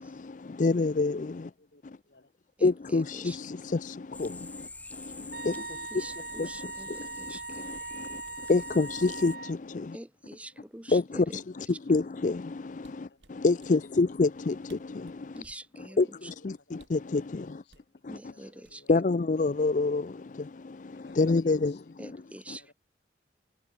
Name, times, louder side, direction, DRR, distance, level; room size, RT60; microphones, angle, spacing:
voice 1, 0.0-1.5 1.8-2.0 2.6-10.0 10.9-15.4 15.8-17.6 18.0-18.3 18.9-22.2 22.5-22.6, left 3 dB, 45° left, 0.5 m, -29 dB
voice 2, 1.6-2.3 6.0-6.7 7.0-7.7 8.0-8.5 11.4-11.5 13.1-13.2 13.9-14.2 15.8-17.8 18.1-18.9 20.9-21.8 22.6-22.7, left 2 dB, 70° left, 4.2 m, -60 dB
voice 3, 2.6-3.4 5.9-7.6 9.9-11.2 15.3-16.0 18.1-18.8 22.0-22.7, right 1 dB, 10° right, 0.9 m, -46 dB
sound 1, 4.1-9.4, left 3 dB, 10° left, 3.5 m, -45 dB
Wind instrument woodwind instrument, 5.3-9.6, right 4 dB, 55° right, 3.9 m, -41 dB
sound 2, 12.8-13.8 14.4-14.5 14.7-15.7 16.7-17.1 17.7-17.9 18.6-19.1 19.4-19.7, right 3 dB, 85° right, 4.6 m, -60 dB
head